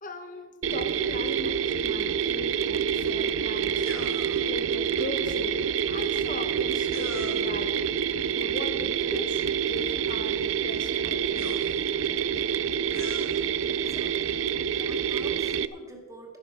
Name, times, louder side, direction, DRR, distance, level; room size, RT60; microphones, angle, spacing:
voice 1, 0.0-3.9 4.4-7.7 8.3-11.7 14.7-14.9, left 1 dB, 40° left, 7 dB, 1.4 m, -39 dB
Mechanisms, 0.6-15.7, right 8 dB, 70° right, 0.4 m, -27 dB
sound 1, 3.8-4.5 6.9-7.6 9.7-9.8 11.3-12.1 12.9-13.5, left 3 dB, 70° left, 1.5 m, -42 dB
voice 2, 13.7-14.4 14.9-16.4, right 1 dB, 15° right, 2 dB, 2.1 m, -47 dB
12.5 x 10.5 x 5.8 m, 1.4 s
head